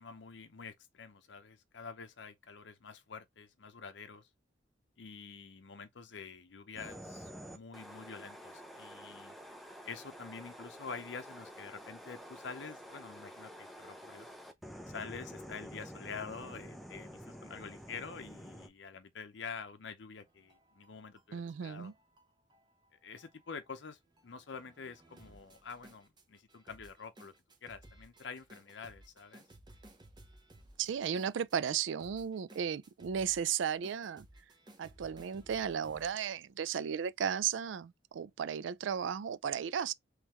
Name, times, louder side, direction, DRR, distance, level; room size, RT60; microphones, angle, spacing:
voice 1, 0.0-4.3 5.0-9.4 9.8-14.3 14.9-21.9 23.0-27.3 27.6-29.4, left 5 dB, 70° left, 0.6 m, -47 dB
sound 1, 6.8-18.7, equal, ahead, 0.6 m, -49 dB
sound 2, 20.2-36.1, right 1 dB, 25° right, 0.8 m, -59 dB
voice 2, 21.3-21.9 30.8-34.3 34.8-39.9, right 8 dB, 80° right, 0.4 m, -35 dB
3.6 x 3.2 x 3.0 m
head